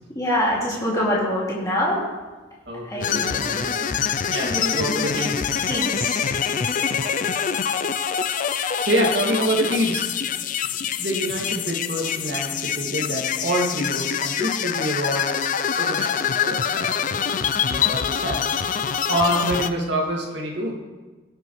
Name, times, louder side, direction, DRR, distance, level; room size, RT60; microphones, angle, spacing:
voice 1, 0.1-2.0 2.8-3.6 4.5-5.2 5.7-6.3, left 1 dB, 20° left, -7 dB, 2.5 m, -25 dB
voice 2, 2.7-5.6 6.7-6.8 8.8-10.3 10.6-15.4 15.8-18.6 19.1-20.7, equal, 60° right, -1 dB, 2.3 m, -27 dB
sound 1, 3.0-19.7, left 7 dB, 45° left, 0.4 m, -25 dB
19.0 x 7.7 x 3.2 m, 1.3 s
head